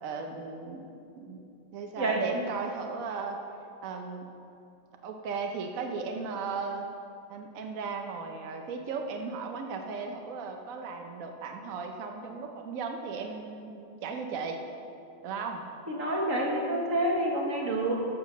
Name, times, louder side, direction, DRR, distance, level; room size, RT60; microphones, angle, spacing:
voice 1, 0.0-1.4 1.7-3.4 3.8-4.3 5.0-6.9 7.3-14.6 15.2-15.6, right 5 dB, 65° right, 3 dB, 0.8 m, -36 dB
voice 2, 15.9-17.9, right 1 dB, 40° right, -2 dB, 1.7 m, -28 dB
13.0 x 5.1 x 6.7 m, 2.6 s
omnidirectional pair, 2.2 m